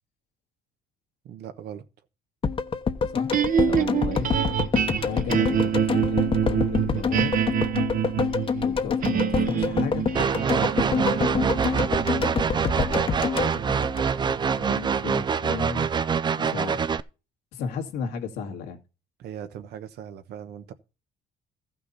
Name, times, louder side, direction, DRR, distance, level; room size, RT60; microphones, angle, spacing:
voice 1, 1.2-1.8 10.4-10.8 19.2-20.7, right 9 dB, 75° right, 1.2 m, -38 dB
sound 1, 2.4-14.6 14.9-15.0, left 5 dB, 30° left, 1.0 m, -27 dB
sound 2, 3.3-15.6, right 8 dB, 55° right, 1.1 m, -27 dB
voice 2, 3.7-4.3 5.0-7.3 8.6-10.1 14.6-15.9 16.4-16.9 17.5-18.8, left 6 dB, 85° left, 2.1 m, -34 dB
sound 3, 10.1-17.0, right 6 dB, 25° right, 0.5 m, -25 dB
14.5 x 6.1 x 4.1 m
cardioid pair, 110°, 17 cm